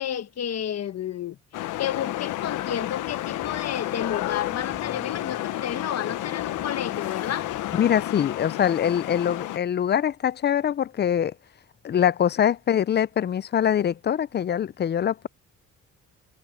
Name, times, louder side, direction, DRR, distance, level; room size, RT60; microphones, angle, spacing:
voice 1, 0.0-1.4 1.8-7.5, left 9 dB, 55° left, 1.2 m, -31 dB
sound 1, 1.5-9.6, left 14 dB, 85° left, 1.1 m, -31 dB
sound 2, 2.1-8.3, right 1 dB, 5° right, 6.4 m, -53 dB
voice 2, 7.8-11.3 11.8-15.3, left 9 dB, 35° left, 0.4 m, -23 dB
cardioid pair, 90°, 30 cm